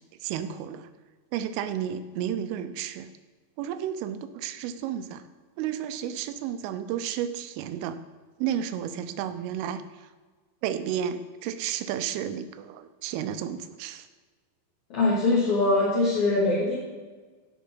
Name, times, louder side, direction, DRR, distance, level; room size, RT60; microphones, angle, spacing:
voice 1, 0.2-0.9 1.3-3.1 3.6-5.2 5.6-8.0 8.4-10.1 10.6-14.1, right 9 dB, 90° right, 11 dB, 3.3 m, -32 dB
voice 2, 14.9-16.8, left 2 dB, 40° left, -8 dB, 2.6 m, -22 dB
16.0 x 6.0 x 5.5 m, 1.4 s
omnidirectional pair, 5.6 m